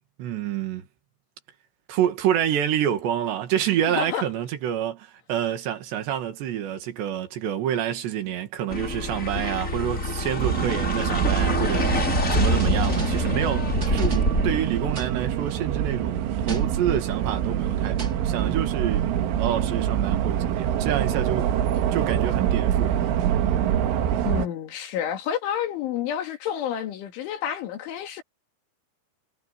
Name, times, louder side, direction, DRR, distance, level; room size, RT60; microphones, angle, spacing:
voice 1, 0.2-0.8 1.9-19.1 19.4-21.5 21.9-23.0, right 10 dB, 65° right, 4.1 m, -28 dB
voice 2, 3.8-4.2 24.2-28.2, left 9 dB, 75° left, 5.0 m, -29 dB
sound 1, 8.7-15.0, left 2 dB, 20° left, 3.1 m, -26 dB
sound 2, 10.4-24.5, right 10 dB, 85° right, 4.2 m, -25 dB
sound 3, 10.9-11.7 12.6-13.5 13.8-14.6 14.9-15.2 16.5-16.9 18.0-18.3, right 4 dB, 20° right, 2.8 m, -36 dB
omnidirectional pair, 5.6 m